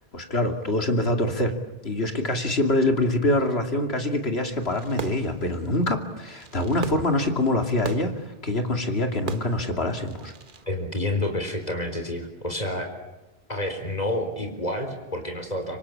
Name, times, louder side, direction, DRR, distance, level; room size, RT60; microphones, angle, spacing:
voice 1, 0.1-1.5 1.8-10.3, left 1 dB, 85° left, 5 dB, 2.9 m, -25 dB
Fireworks, 4.6-10.6, right 5 dB, 55° right, 1.3 m, -40 dB
voice 2, 10.7-12.9 13.5-15.8, left 1 dB, 40° left, 5 dB, 4.0 m, -29 dB
26.0 x 25.0 x 8.6 m, 1.0 s
omnidirectional pair, 1.0 m